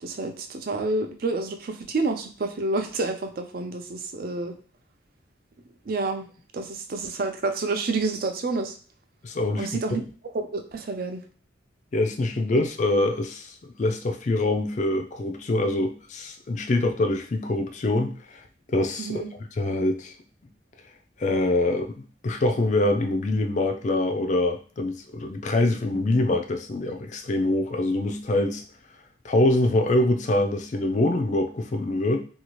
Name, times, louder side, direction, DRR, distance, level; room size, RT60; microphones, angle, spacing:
voice 1, 0.0-4.5 5.9-6.2 6.5-8.8 9.6-11.2 19.0-19.3, right 3 dB, 45° right, 6 dB, 0.4 m, -29 dB
voice 2, 9.2-9.7 11.9-18.4 18.7-19.2 19.6-20.1 21.2-28.6 29.2-32.2, left 2 dB, 35° left, 5 dB, 0.4 m, -24 dB
2.7 x 2.4 x 3.0 m, 0.40 s
head